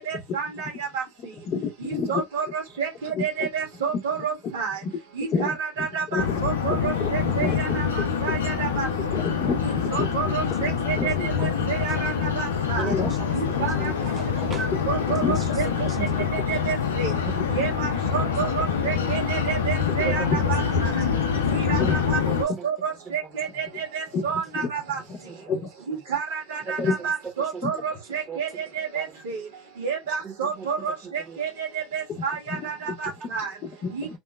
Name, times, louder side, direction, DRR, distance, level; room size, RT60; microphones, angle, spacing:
voice 1, 0.0-1.0 1.8-4.8 5.1-8.9 9.6-11.1 11.4-12.9 13.3-13.9 14.9-15.7 16.3-17.1 17.5-20.9 21.5-25.0 25.9-29.4 29.8-31.7 31.9-33.5 33.9-34.2, right 6 dB, 75° right, 1.3 m, -30 dB
voice 2, 1.4-2.1 3.1-3.2 4.8-5.0 5.3-6.9 7.2-7.8 8.5-8.7 9.1-10.1 11.0-11.1 12.9-13.1 13.6-13.7 15.2-15.3 17.3-17.4 18.4-18.5 20.0-20.4 21.5-21.9 24.1-24.2 24.6-24.7 25.5-25.6 26.8-26.9 27.6-27.7 32.1-32.6 32.9-33.0 33.6-34.2, left 5 dB, 50° left, 0.7 m, -29 dB
sound 1, 6.2-22.4, left 6 dB, 90° left, 0.5 m, -25 dB
voice 3, 11.0-12.2 12.8-13.3 13.6-14.7 15.3-16.3 18.1-18.3 18.9-19.2 20.0-20.3 21.1-21.3 22.2-22.7 23.1-23.6 25.3-25.6 26.6-27.1 27.4-27.8 28.3-28.4 28.9-29.0 30.2-31.4, right 5 dB, 30° right, 0.8 m, -38 dB
2.9 x 2.0 x 2.2 m
hypercardioid pair, 80°, 0 cm